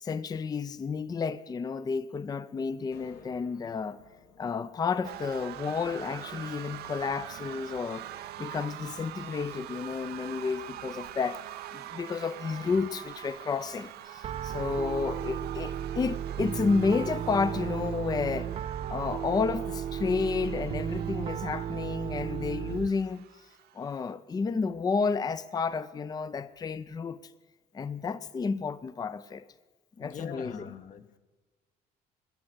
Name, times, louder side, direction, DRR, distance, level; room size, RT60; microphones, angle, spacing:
voice 1, 0.0-4.0 4.4-8.1 8.4-11.4 11.7-18.5 18.9-23.2 23.7-27.2 27.7-29.5 30.0-30.7, left 5 dB, 25° left, 0.5 m, -31 dB
sound 1, 2.9-7.3, left 5 dB, 75° left, 1.9 m, -58 dB
sound 2, 5.0-24.1, right 13 dB, 75° right, 0.7 m, -44 dB
Piano, 14.2-22.9, right 9 dB, 40° right, 0.4 m, -34 dB
voice 2, 30.0-31.2, left 7 dB, 50° left, 1.1 m, -42 dB
21.0 x 7.7 x 8.0 m
cardioid pair, 110°, 17 cm